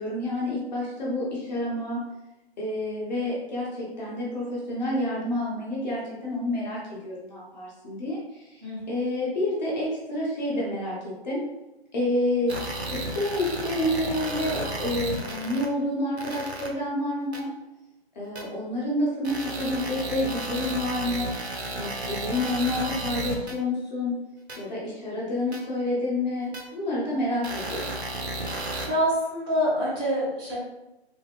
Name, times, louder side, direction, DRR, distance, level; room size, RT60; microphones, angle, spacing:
voice 1, 0.0-2.0 2.6-11.4 11.9-12.5 12.8-17.5 18.1-21.3 21.7-24.1 24.6-27.9, left 1 dB, 45° left, -5 dB, 1.0 m, -29 dB
voice 2, 8.6-9.0 28.9-30.6, equal, 20° right, -8 dB, 0.8 m, -26 dB
sound 1, 12.5-15.7 16.2-16.7 17.3-17.4 18.4-18.5 19.2-23.5 24.5-24.6 25.5-25.6 26.5-26.6 27.4-28.9, right 2 dB, 85° right, 0.6 m, -33 dB
3.4 x 2.1 x 2.2 m, 0.96 s
figure-of-eight pair, 140°, 32 cm